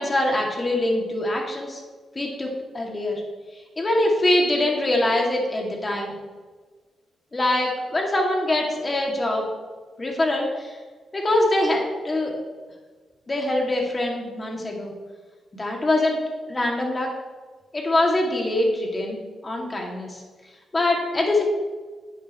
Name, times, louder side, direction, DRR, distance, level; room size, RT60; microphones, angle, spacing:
voice 1, 0.0-1.8 2.2-2.5 2.7-3.2 3.8-6.1 7.3-9.4 10.0-10.7 11.1-12.3 13.3-14.9 15.5-16.2 16.5-17.1 17.7-19.2 19.4-20.2 20.7-21.4, left 1 dB, 30° left, 0 dB, 2.2 m, -23 dB
11.0 x 8.3 x 3.1 m, 1.4 s
cardioid pair, 80°, 0 cm